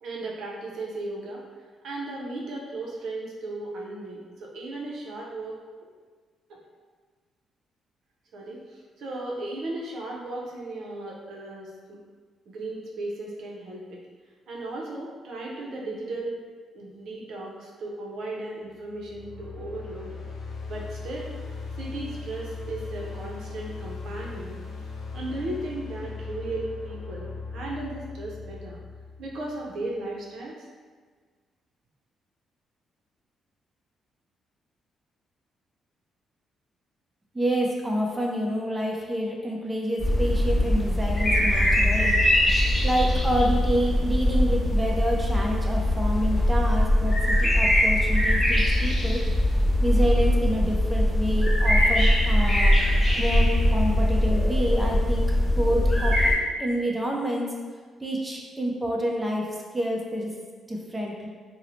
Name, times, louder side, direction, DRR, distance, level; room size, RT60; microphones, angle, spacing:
voice 1, 0.0-1.4 1.8-5.6 6.5-6.6 8.3-12.0 12.5-14.1 14.5-16.4 16.7-20.2 20.7-21.4 21.8-24.6 25.1-28.8 29.2-30.7, right 2 dB, 75° right, -3 dB, 0.5 m, -36 dB
sound 1, 18.9-29.9, left 4 dB, 70° left, 0.4 m, -38 dB
voice 2, 37.3-42.2 42.8-49.2 49.8-52.8 53.2-55.2 55.6-56.2 56.6-57.5 58.0-59.5 59.7-60.3 60.7-61.3, equal, 10° right, -2 dB, 0.4 m, -28 dB
sound 2, 40.0-56.3, left 1 dB, 20° left, 0.7 m, -21 dB
2.6 x 2.0 x 2.9 m, 1.5 s
cardioid pair, 75°, 0 cm